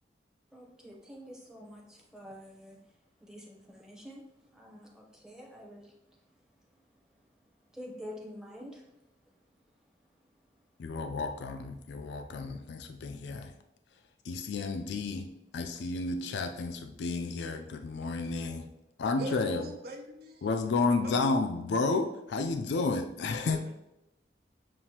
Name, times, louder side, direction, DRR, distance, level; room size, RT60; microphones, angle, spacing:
voice 1, 0.5-2.8 3.2-5.9 7.7-8.8, equal, 5° right, -2 dB, 0.7 m, -47 dB
voice 2, 10.8-13.5 14.2-15.3 15.5-18.7 19.0-19.7 20.4-23.6, left 3 dB, 75° left, 6 dB, 0.4 m, -31 dB
voice 3, 19.2-20.5 21.0-21.3 23.5-23.8, right 1 dB, 55° right, 3 dB, 0.7 m, -42 dB
7.4 x 2.5 x 2.8 m, 0.91 s
head